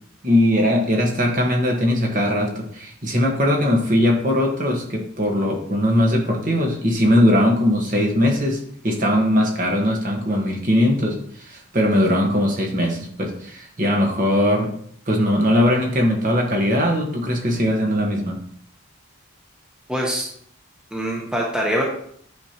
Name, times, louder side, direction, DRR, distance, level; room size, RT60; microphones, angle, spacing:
voice 1, 0.2-14.7 15.1-18.4, left 1 dB, 40° right, 1 dB, 1.4 m, -20 dB
voice 2, 19.9-20.3 20.9-21.8, equal, 5° right, -3 dB, 1.0 m, -23 dB
9.5 x 5.2 x 2.9 m, 0.64 s
head